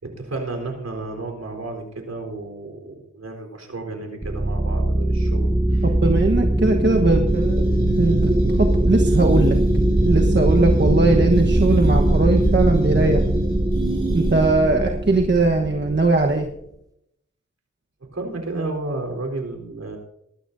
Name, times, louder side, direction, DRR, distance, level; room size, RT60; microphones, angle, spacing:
voice 1, 0.0-5.9 13.7-14.0 18.0-20.0, right 2 dB, 55° right, 2 dB, 4.1 m, -32 dB
sound 1, 4.2-16.5, right 1 dB, 10° right, 0.8 m, -20 dB
voice 2, 5.8-9.6 10.0-13.2 14.1-16.5, right 3 dB, 35° right, 2 dB, 1.3 m, -20 dB
sound 2, 7.3-14.8, right 2 dB, 85° right, 4.6 m, -32 dB
19.5 x 13.0 x 2.7 m, 0.79 s
cardioid pair, 60°, 30 cm